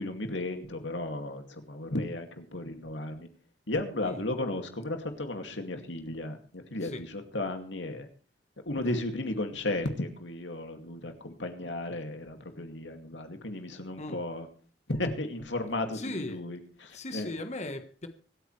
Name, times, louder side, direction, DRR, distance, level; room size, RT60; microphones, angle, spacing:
voice 1, 0.0-3.3 3.7-8.1 8.6-14.5 14.9-17.3, left 2 dB, 80° left, 5 dB, 2.4 m, -34 dB
voice 2, 15.9-16.4 16.9-18.1, left 2 dB, 40° left, 7 dB, 1.4 m, -38 dB
25.0 x 9.1 x 3.3 m, 0.41 s
head